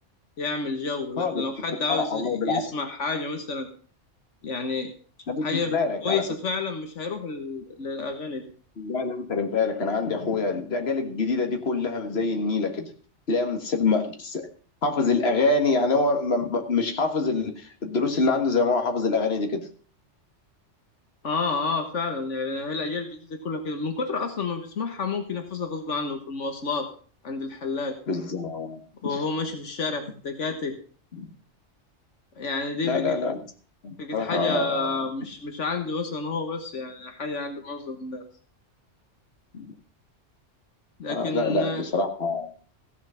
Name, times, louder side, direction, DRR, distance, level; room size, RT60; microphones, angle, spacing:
voice 1, 0.4-3.7 4.4-4.9 5.4-5.8 6.0-8.5 21.2-26.9 27.2-28.0 29.0-30.8 32.4-33.2 34.0-38.2 41.0-41.8, left 4 dB, 80° left, 5 dB, 1.7 m, -30 dB
voice 2, 1.9-2.6 5.3-6.2 8.8-12.9 13.3-14.4 14.8-19.7 28.1-29.2 31.1-31.3 32.8-33.4 33.8-35.1 39.5-39.7 41.1-42.5, left 3 dB, 60° left, 5 dB, 1.8 m, -25 dB
15.5 x 7.2 x 5.6 m, 0.42 s
omnidirectional pair, 1.2 m